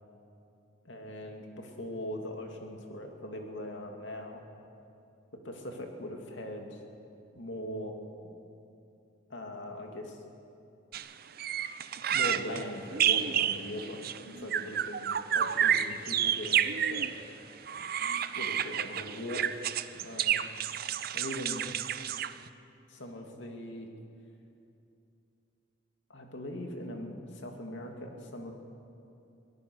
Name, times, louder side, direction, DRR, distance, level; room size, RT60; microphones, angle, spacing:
voice 1, 0.8-4.4 5.4-6.8 7.3-7.9 8.2-8.4 9.3-10.2 12.1-17.3 18.3-19.6 20.0-20.5 21.1-21.7 22.9-23.9 26.1-28.5, left 1 dB, 65° left, 3 dB, 2.6 m, -40 dB
sound 1, 10.9-11.1 11.4-17.2 17.7-22.5, right 9 dB, 50° right, 0.6 m, -30 dB
24.0 x 17.5 x 6.4 m, 2.7 s
head